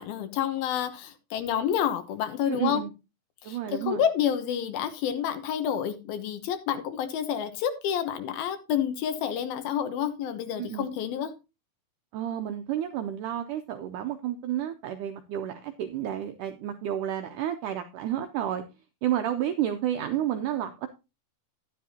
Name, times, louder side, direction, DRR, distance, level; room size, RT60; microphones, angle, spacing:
voice 1, 0.0-2.8 3.4-11.3, left 9 dB, 75° left, 2.8 m, -29 dB
voice 2, 2.5-2.9 3.4-4.0 10.6-10.9 12.1-18.6 19.0-20.9, right 11 dB, 85° right, 1.8 m, -31 dB
11.0 x 10.0 x 2.8 m
omnidirectional pair, 4.4 m